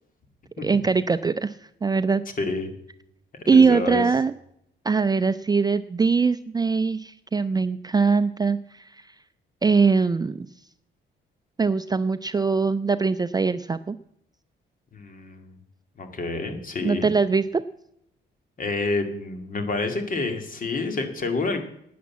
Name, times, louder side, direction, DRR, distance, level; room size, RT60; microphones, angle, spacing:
voice 1, 0.6-1.6 1.8-2.2 3.5-4.3 4.8-9.1 9.6-10.5 11.6-14.0 16.8-17.6, right 5 dB, 20° right, 11 dB, 0.4 m, -22 dB
voice 2, 2.4-2.7 3.5-4.1 14.9-15.6 16.0-17.1 18.6-21.6, left 3 dB, 45° left, 6 dB, 2.2 m, -28 dB
12.0 x 9.5 x 7.3 m, 0.77 s
cardioid pair, 90°, 20 cm